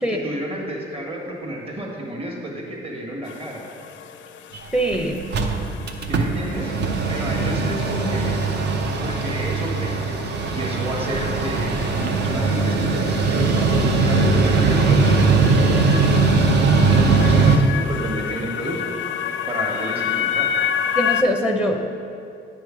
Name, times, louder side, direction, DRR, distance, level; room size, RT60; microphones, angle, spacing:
voice 1, 0.1-3.6 6.1-6.7 7.1-8.4 9.0-10.2 10.5-18.8 19.5-20.5, right 1 dB, 30° right, -1 dB, 1.4 m, -31 dB
sound 1, 3.3-21.2, left 9 dB, 75° left, 0.4 m, -31 dB
Mechanical fan, 4.5-4.6 4.9-5.0 5.2-17.6, right 3 dB, 60° right, 0.6 m, -20 dB
voice 2, 4.7-5.2 21.0-22.0, equal, 5° right, 3 dB, 0.6 m, -22 dB
9.2 x 3.1 x 6.0 m, 2.6 s
cardioid pair, 90°, 20 cm